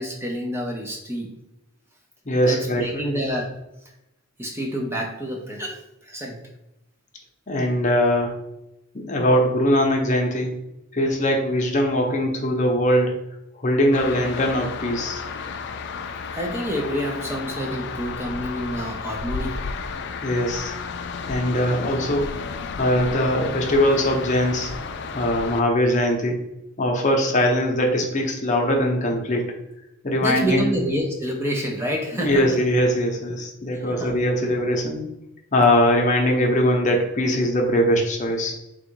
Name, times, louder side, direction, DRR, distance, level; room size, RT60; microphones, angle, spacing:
voice 1, 0.0-1.3 2.4-3.5 4.4-5.8 6.0-6.4 16.3-19.6 30.2-32.6 33.9-34.1, equal, 10° right, 0 dB, 0.5 m, -28 dB
voice 2, 2.2-3.1 7.5-8.4 8.9-10.6 10.9-13.1 13.6-15.2 20.2-20.7 21.3-22.3 22.8-24.7 25.1-26.4 26.8-29.5 30.0-30.7 32.1-35.0 35.5-38.5, equal, 35° left, 0 dB, 0.7 m, -21 dB
sound 1, 13.9-25.6, left 5 dB, 55° left, 0.3 m, -32 dB
3.6 x 2.4 x 4.4 m, 0.88 s
head